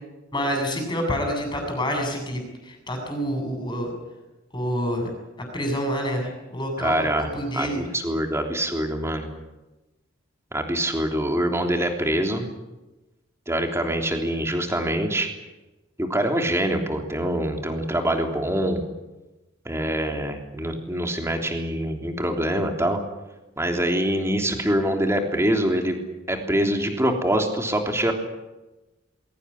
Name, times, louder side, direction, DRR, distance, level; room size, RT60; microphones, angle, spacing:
voice 1, 0.3-3.9 4.5-5.1 5.5-7.8, equal, 20° left, 3 dB, 7.3 m, -27 dB
voice 2, 6.8-7.3 7.5-9.3 10.5-12.4 13.5-15.3 16.0-18.8 19.6-23.0 23.6-26.0 26.3-28.1, right 1 dB, 15° right, 3 dB, 3.3 m, -24 dB
22.0 x 18.0 x 9.9 m, 1.1 s
head